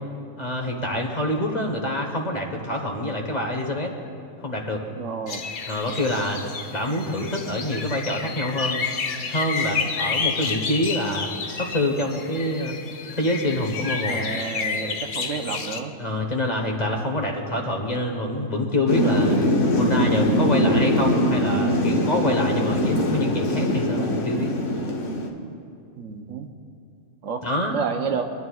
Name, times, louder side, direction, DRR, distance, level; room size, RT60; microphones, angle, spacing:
voice 1, 0.4-3.9 4.4-4.8 5.7-6.4 6.7-8.8 9.3-12.8 13.1-14.2 16.0-19.4 19.8-24.5 27.4-27.8, left 1 dB, 35° left, 1 dB, 1.2 m, -26 dB
voice 2, 5.0-5.5 14.1-15.9 26.0-26.5 27.2-27.4 27.7-28.2, right 5 dB, 75° right, 5 dB, 1.1 m, -30 dB
sound 1, 5.3-15.8, left 5 dB, 50° left, 0.7 m, -30 dB
Thunder / Rain, 18.9-25.3, left 1 dB, 70° left, 1.4 m, -22 dB
24.5 x 11.0 x 2.4 m, 2.5 s
omnidirectional pair, 1.3 m